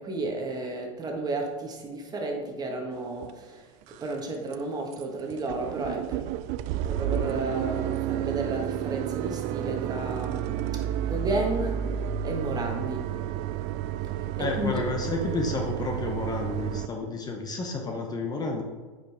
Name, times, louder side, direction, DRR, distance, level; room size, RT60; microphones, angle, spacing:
voice 1, 0.0-3.7 4.0-6.4 6.8-11.8 12.2-13.1 14.4-14.8, right 2 dB, 20° right, 1 dB, 1.5 m, -32 dB
sound 1, 3.2-3.3 3.8-4.2 4.5-4.6 4.9-5.0 5.3-16.9, right 11 dB, 45° right, 0.4 m, -31 dB
voice 2, 14.4-18.6, left 3 dB, 20° left, 2 dB, 0.9 m, -31 dB
8.9 x 5.1 x 3.5 m, 1.4 s
hypercardioid pair, 100°, 17 cm